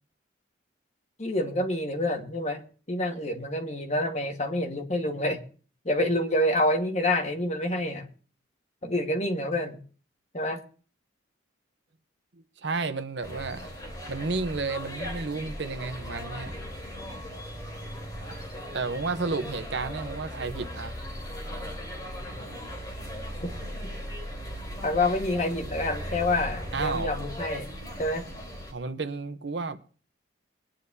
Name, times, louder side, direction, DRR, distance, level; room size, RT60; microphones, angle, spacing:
voice 1, 1.2-2.6 2.9-5.4 5.8-8.1 8.8-9.8 10.3-10.6 23.4-23.5 24.8-27.7 28.0-28.2, left 1 dB, 35° left, 1.5 m, -27 dB
voice 2, 12.4-13.6 14.1-16.5 18.7-20.9 26.7-27.1 28.7-29.8, right 4 dB, 60° right, 0.8 m, -32 dB
sound 1, 13.2-28.7, equal, 20° left, 3.5 m, -38 dB
22.0 x 10.0 x 2.7 m
head